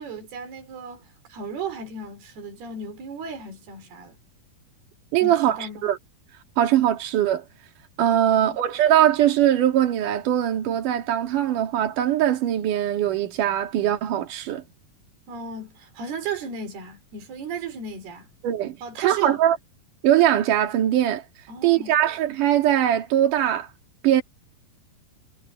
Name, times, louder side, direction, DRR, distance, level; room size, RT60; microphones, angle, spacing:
voice 1, 0.0-4.2 5.2-5.9 15.3-18.3 18.8-19.4 21.5-21.9, right 5 dB, 75° right, 6.1 m, -35 dB
voice 2, 5.1-5.6 5.8-6.0 6.6-7.4 8.0-14.6 18.4-19.6 20.0-21.2 21.6-23.7 24.0-24.2, right 11 dB, 60° right, 3.5 m, -21 dB
omnidirectional pair, 4.6 m